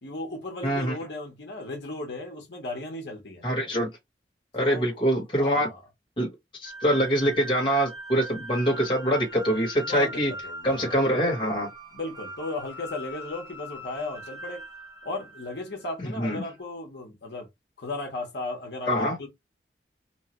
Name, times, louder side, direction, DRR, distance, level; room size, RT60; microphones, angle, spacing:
voice 1, 0.0-3.4 4.6-4.9 5.4-5.8 9.8-10.9 11.9-14.6 15.0-17.5 17.8-19.3, left 2 dB, 75° left, 1.0 m, -36 dB
voice 2, 0.6-0.9 3.4-3.9 4.5-5.7 6.2-6.3 6.6-10.3 10.6-11.7 16.2-16.4 18.9-19.1, equal, 30° left, 1.2 m, -24 dB
sound 1, 6.6-15.8, right 1 dB, 20° right, 1.0 m, -41 dB
3.0 x 2.3 x 2.9 m
head